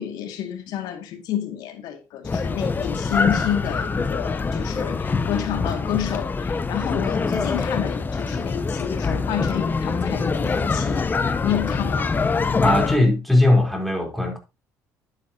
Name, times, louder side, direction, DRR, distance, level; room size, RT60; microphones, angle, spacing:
voice 1, 0.0-12.2, left 10 dB, 80° left, 2.2 m, -29 dB
sound 1, 2.2-13.0, left 4 dB, 30° left, 0.9 m, -24 dB
voice 2, 12.6-14.4, left 1 dB, ahead, 3.7 m, -19 dB
11.0 x 8.9 x 2.9 m
cardioid pair, 90°, 7 cm